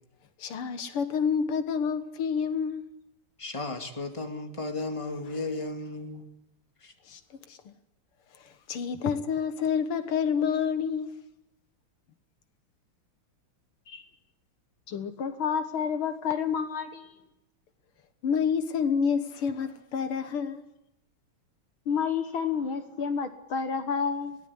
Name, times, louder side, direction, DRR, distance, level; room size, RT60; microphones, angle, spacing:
voice 1, 0.4-2.9 5.2-5.4 7.1-7.2 7.5-7.7 8.4-11.1 18.2-20.6, left 6 dB, 85° left, 2.4 m, -28 dB
voice 2, 3.4-6.3 6.8-6.9, left 2 dB, 15° left, 2.3 m, -34 dB
voice 3, 14.9-17.1 21.9-24.4, left 6 dB, 70° left, 2.2 m, -30 dB
22.5 x 18.0 x 9.8 m
omnidirectional pair, 2.4 m